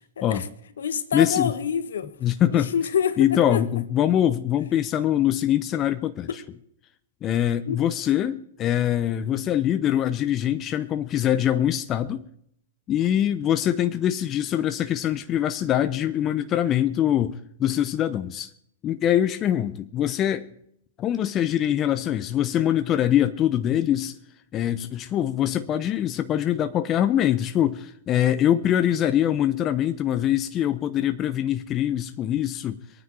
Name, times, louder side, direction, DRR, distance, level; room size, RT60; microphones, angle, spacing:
voice 1, 0.2-0.5 0.8-2.1 2.5-3.6 6.3-6.4 7.7-7.8, left 7 dB, 75° left, 1.5 m, -27 dB
voice 2, 1.1-1.5 2.2-2.7 3.2-6.4 7.2-12.3 12.9-18.5 18.8-20.5 21.0-24.2 24.5-32.8, left 11 dB, 30° left, 0.8 m, -23 dB
23.0 x 9.5 x 4.7 m
hypercardioid pair, 115°, 0 cm